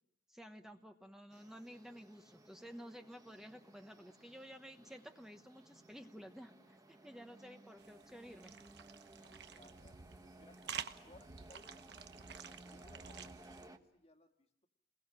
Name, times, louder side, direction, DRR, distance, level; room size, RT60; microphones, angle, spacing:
voice 1, 0.3-8.6, equal, 5° right, 5 dB, 1.1 m, -53 dB
sound 1, 1.3-13.8, right 1 dB, 20° right, 1.5 m, -59 dB
sound 2, 7.8-13.7, right 7 dB, 65° right, 1.1 m, -50 dB
voice 2, 9.5-10.0 10.4-14.7, left 2 dB, 35° left, 5 dB, 1.9 m, -65 dB
29.5 x 21.5 x 7.5 m, 0.76 s
head